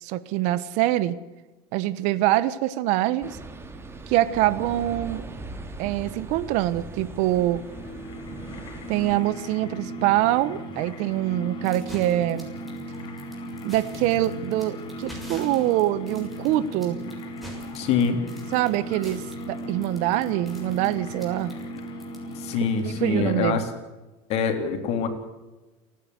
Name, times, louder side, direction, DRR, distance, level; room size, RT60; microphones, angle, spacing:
voice 1, 0.0-1.2 1.7-3.4 4.1-5.2 5.8-7.6 8.9-12.5 13.6-17.0 18.5-21.5 22.8-23.6, right 14 dB, 65° right, 17 dB, 1.2 m, -24 dB
sound 1, 3.2-9.2, right 3 dB, 20° right, 2.7 m, -39 dB
sound 2, 7.0-23.7, equal, 40° left, 4.4 m, -37 dB
sound 3, 11.6-22.9, left 1 dB, ahead, 7.1 m, -46 dB
voice 2, 17.7-18.2 22.4-23.6 24.3-25.1, left 6 dB, 55° left, 6 dB, 3.7 m, -24 dB
29.5 x 11.0 x 8.3 m, 1.1 s
supercardioid pair, 110°, 13 cm